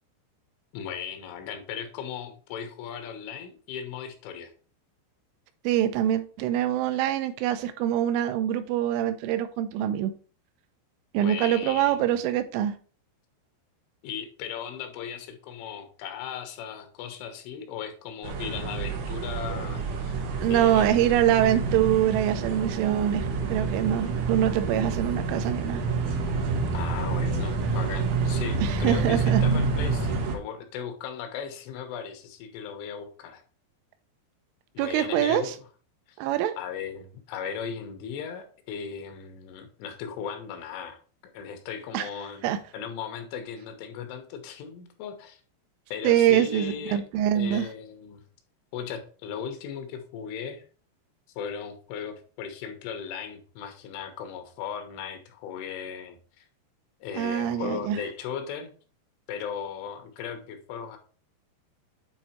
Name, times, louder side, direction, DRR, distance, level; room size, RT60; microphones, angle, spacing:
voice 1, 0.7-4.5 11.2-12.1 14.0-20.2 20.5-21.2 26.7-33.4 34.8-35.6 36.6-41.0 41.3-45.4 45.9-47.1 47.4-48.2 48.7-50.6 51.4-56.5 57.0-58.7 59.3-61.0, left 7 dB, 85° left, 3.6 m, -37 dB
voice 2, 5.6-10.1 11.1-12.7 20.4-25.8 28.6-29.4 34.8-35.5 36.2-36.5 41.9-42.1 42.4-42.6 46.0-47.7 57.2-58.0, right 11 dB, 85° right, 3.1 m, -24 dB
sound 1, 18.2-30.4, right 4 dB, 70° right, 3.3 m, -28 dB
9.0 x 3.6 x 4.3 m
omnidirectional pair, 5.4 m